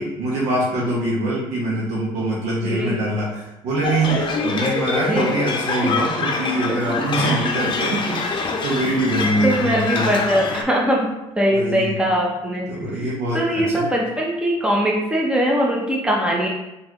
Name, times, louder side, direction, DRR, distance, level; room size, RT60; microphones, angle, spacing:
voice 1, 0.0-10.1 11.5-11.9 12.7-13.9, right 1 dB, 75° right, -5 dB, 1.1 m, -24 dB
voice 2, 2.6-3.0 5.1-5.3 6.7-6.8 7.2-7.4 9.4-11.1 11.4-12.7 13.3-16.5, equal, 10° right, -2 dB, 0.8 m, -21 dB
sound 1, 3.8-10.6, left 4 dB, 40° left, 0.7 m, -25 dB
3.9 x 3.4 x 3.0 m, 0.96 s
cardioid pair, 100°, 12 cm